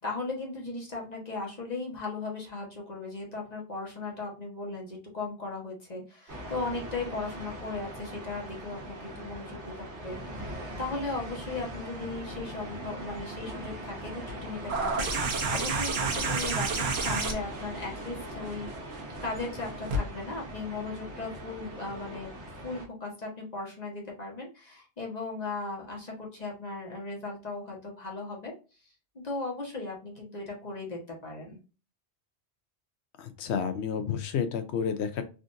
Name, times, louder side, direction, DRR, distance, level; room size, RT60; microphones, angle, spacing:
voice 1, 0.0-18.7 19.2-22.3 22.6-28.5 29.1-31.6, left 3 dB, 40° left, -1 dB, 1.1 m, -37 dB
sound 1, 6.3-22.9, right 1 dB, 85° right, 1.3 m, -41 dB
sound 2, 14.7-20.0 21.3-21.4, right 3 dB, 65° right, 1.0 m, -31 dB
voice 2, 33.2-35.2, left 7 dB, 75° left, 8 dB, 0.9 m, -30 dB
3.7 x 2.5 x 2.5 m, 0.33 s
omnidirectional pair, 1.1 m